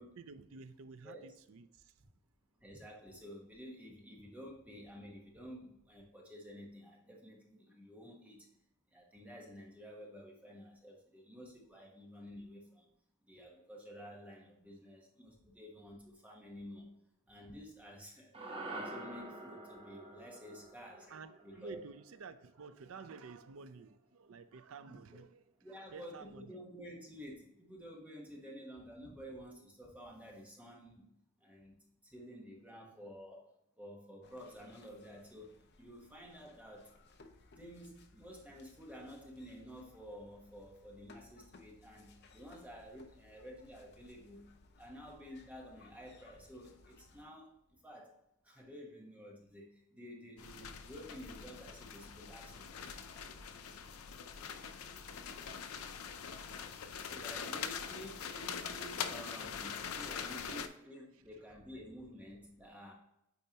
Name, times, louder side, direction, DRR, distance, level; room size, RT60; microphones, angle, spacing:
voice 1, 0.2-2.1 21.1-26.6 60.4-60.5 61.1-61.2, right 4 dB, 70° right, 0.5 m, -52 dB
voice 2, 1.0-1.4 2.6-8.5 8.9-12.9 13.3-16.9 17.3-21.8 24.9-25.0 25.6-31.1 31.4-31.8 32.0-33.5 33.8-35.5 35.8-36.9 37.6-44.5 44.8-47.5 47.8-48.2 48.4-53.0 56.7-62.9, equal, 5° right, 1.1 m, -51 dB
sound 1, 18.3-22.8, right 2 dB, 25° right, 0.8 m, -47 dB
sound 2, 34.2-47.2, left 3 dB, 50° left, 0.7 m, -62 dB
sound 3, 50.4-60.7, left 7 dB, 85° left, 0.5 m, -43 dB
8.4 x 4.5 x 2.9 m
head